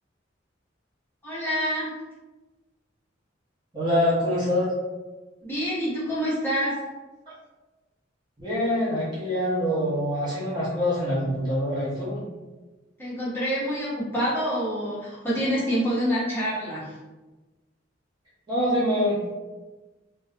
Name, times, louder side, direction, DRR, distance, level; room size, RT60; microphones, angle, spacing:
voice 1, 1.2-1.9 5.4-6.8 13.0-16.9, equal, 10° left, -9 dB, 0.8 m, -27 dB
voice 2, 3.7-4.7 8.4-12.2 18.5-19.2, equal, 20° right, -9 dB, 0.6 m, -25 dB
2.3 x 2.1 x 2.7 m, 1.2 s
head